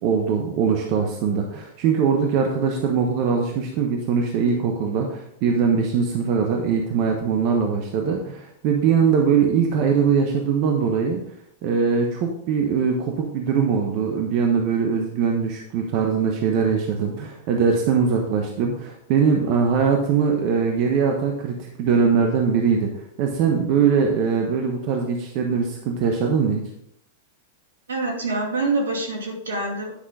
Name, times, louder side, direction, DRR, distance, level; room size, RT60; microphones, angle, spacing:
voice 1, 0.0-11.2 11.6-26.6, right 6 dB, 50° right, 2 dB, 1.2 m, -21 dB
voice 2, 27.9-29.9, right 2 dB, 80° right, 0 dB, 2.6 m, -25 dB
10.0 x 6.1 x 3.8 m, 0.74 s
hypercardioid pair, 100°, 0 cm